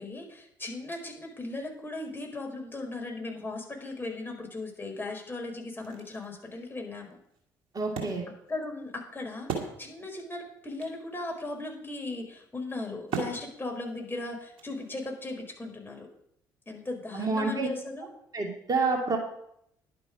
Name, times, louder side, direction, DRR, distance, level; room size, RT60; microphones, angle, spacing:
voice 1, 0.0-7.2 8.5-16.1 16.7-18.1, left 2 dB, 20° left, 1 dB, 4.5 m, -37 dB
Wood, 5.8-10.3 10.5-10.6 10.8-15.2, right 5 dB, 65° right, 2.6 m, -40 dB
voice 2, 7.7-8.2 17.2-17.7 18.3-19.2, right 3 dB, 35° right, 2 dB, 2.6 m, -28 dB
11.0 x 10.5 x 5.2 m, 0.72 s
figure-of-eight pair, 45°, 10 cm